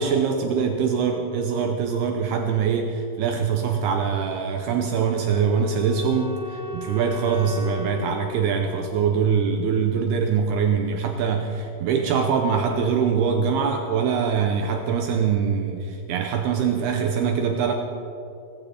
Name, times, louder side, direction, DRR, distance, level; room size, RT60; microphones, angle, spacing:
voice 1, 0.0-17.7, right 6 dB, 80° right, 4 dB, 2.4 m, -23 dB
Wind instrument woodwind instrument, 4.5-9.6, left 1 dB, 60° left, 6.5 m, -37 dB
18.5 x 15.0 x 4.2 m, 2.7 s
omnidirectional pair, 5.3 m